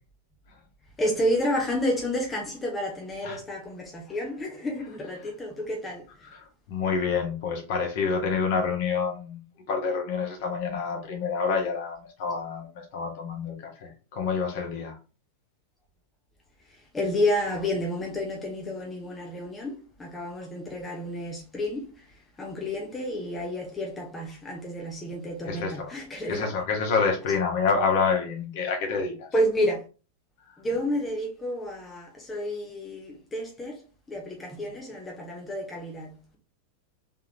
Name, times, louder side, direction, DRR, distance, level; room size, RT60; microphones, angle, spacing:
voice 1, 1.0-6.3 16.7-26.6 27.3-27.4 29.3-29.8 30.6-33.8 34.1-36.4, left 1 dB, 15° left, 0.9 m, -30 dB
voice 2, 6.7-9.4 9.7-14.9 25.5-25.9 26.3-29.3, left 5 dB, 50° left, 1.3 m, -27 dB
3.7 x 3.6 x 2.9 m
figure-of-eight pair, 90°, 0 cm